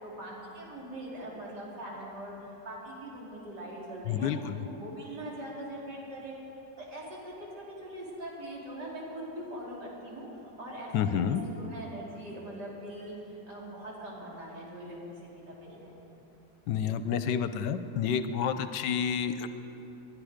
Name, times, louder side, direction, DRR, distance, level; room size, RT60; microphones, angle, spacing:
voice 1, 0.0-4.3 4.6-6.4 6.8-10.3 10.6-15.2 15.5-15.9, right 1 dB, 65° right, -4 dB, 3.7 m, -42 dB
voice 2, 4.1-4.6 10.9-11.4 16.7-19.5, left 8 dB, 80° left, 11 dB, 1.3 m, -29 dB
21.0 x 11.5 x 5.0 m, 2.9 s
omnidirectional pair, 1.9 m